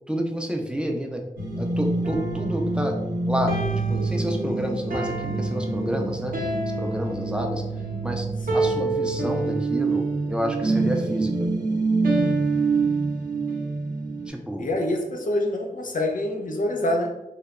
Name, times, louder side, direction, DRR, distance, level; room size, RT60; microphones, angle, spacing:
voice 1, 0.1-1.2 1.6-3.0 3.3-3.5 3.9-6.3 6.8-7.6 8.0-8.3 8.5-11.5 14.3-14.7, equal, 5° right, 2 dB, 0.4 m, -29 dB
sound 1, 1.4-14.3, right 3 dB, 75° right, 0.6 m, -25 dB
voice 2, 14.6-17.1, left 1 dB, 65° left, 3 dB, 0.4 m, -26 dB
2.9 x 2.0 x 2.3 m, 0.94 s
wide cardioid pair, 65°, 15 cm